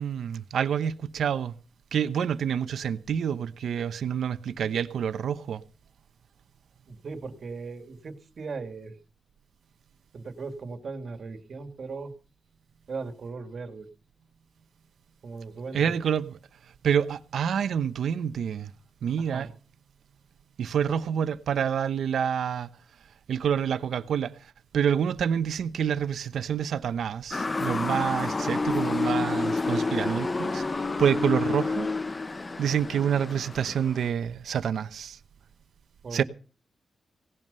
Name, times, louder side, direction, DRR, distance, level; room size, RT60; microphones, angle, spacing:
voice 1, 0.0-1.5 1.9-5.6 15.7-16.3 16.8-18.7 19.0-19.5 20.6-22.7 23.3-31.9 32.6-35.2 36.1-36.2, right 8 dB, 90° right, 0.9 m, -27 dB
voice 2, 6.9-9.0 10.1-12.1 12.9-13.9 15.2-15.9 19.2-19.5 36.0-36.2, right 4 dB, 60° right, 2.3 m, -38 dB
Motor vehicle (road) / Siren, 27.3-34.1, left 3 dB, 30° left, 0.7 m, -29 dB
18.0 x 11.0 x 5.6 m
cardioid pair, 90°, 0 cm